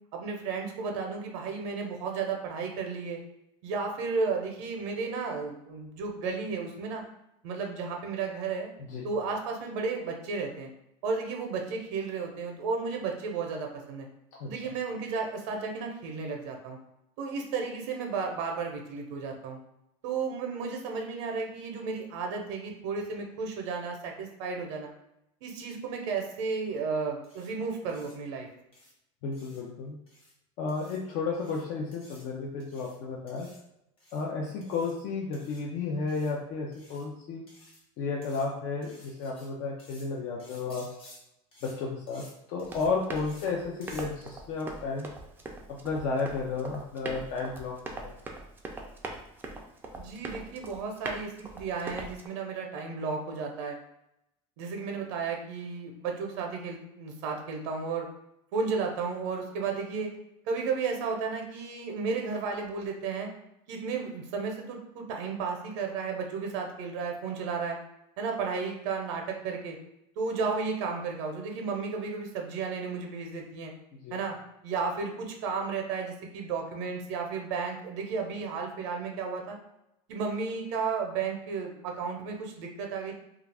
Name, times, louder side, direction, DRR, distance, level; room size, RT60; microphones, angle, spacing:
voice 1, 0.1-3.2 3.6-7.0 7.4-8.7 9.0-10.7 11.0-14.1 14.5-16.8 17.2-19.6 20.0-24.9 25.4-28.5 50.0-53.8 54.6-58.1 58.5-60.1 60.5-63.3 63.7-67.8 68.2-69.8 70.2-73.7 74.1-74.4 74.6-79.6 80.1-83.1, right 5 dB, 80° right, 2 dB, 0.6 m, -33 dB
voice 2, 8.8-9.1 14.4-14.5 29.2-30.0 30.6-33.5 34.1-37.4 38.0-40.9 41.6-42.2 42.5-45.1 45.7-47.8 48.0-48.1 74.0-74.2, left 4 dB, 55° left, -2 dB, 0.5 m, -33 dB
sound 1, 27.2-27.5 27.9-28.2 28.7-28.9 29.3-29.6 30.1-30.3 30.7-31.0 31.3-31.6 31.9-32.2 32.6-33.0 33.3-33.6 34.0-34.2 34.6-34.9 35.3-35.6 36.1-36.3 36.7-37.0 37.5-37.8 38.2-38.4 38.8-39.5 39.8-40.1 40.4-41.2 41.5-41.8 42.1-42.3 42.6-42.9 43.2-43.5 43.8-44.1, left 1 dB, 35° left, 1.1 m, -54 dB
Run, 42.6-52.3, right 2 dB, 15° right, 0.4 m, -42 dB
2.4 x 2.4 x 3.3 m, 0.83 s
supercardioid pair, 135°, 15 cm